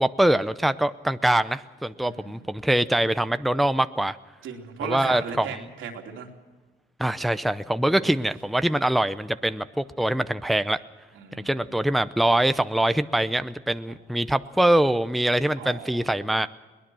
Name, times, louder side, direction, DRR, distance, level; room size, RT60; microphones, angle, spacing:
voice 1, 0.0-4.2 4.8-5.5 7.0-10.8 11.4-16.5, right 1 dB, ahead, 12 dB, 0.6 m, -23 dB
voice 2, 2.0-2.5 4.4-6.3 7.9-8.2 11.1-11.7 13.9-14.0 15.6-16.1, right 7 dB, 80° right, 2 dB, 3.1 m, -37 dB
22.5 x 19.0 x 6.3 m, 1.3 s
cardioid pair, 90°, 20 cm